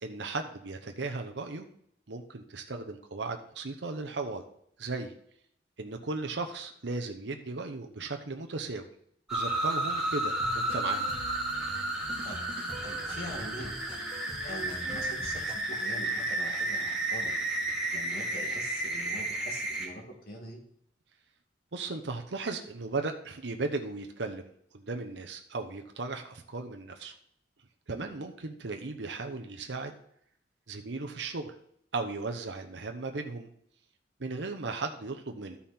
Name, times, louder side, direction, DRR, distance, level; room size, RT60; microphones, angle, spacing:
voice 1, 0.0-1.7 2.1-4.4 4.8-5.1 5.8-8.9 9.3-11.1 21.7-24.4 24.7-27.1 27.9-29.9 30.7-31.5 31.9-33.5 34.2-35.6, right 3 dB, 80° right, 5 dB, 0.9 m, -36 dB
sound 1, 9.3-19.9, right 2 dB, 5° right, 1.9 m, -32 dB
sound 2, 10.4-15.6, right 1 dB, 30° right, 1.6 m, -45 dB
voice 2, 12.8-13.7 14.4-17.3 17.9-20.6 28.0-28.1, equal, 55° left, 0 dB, 2.4 m, -43 dB
13.0 x 5.6 x 4.4 m, 0.69 s
head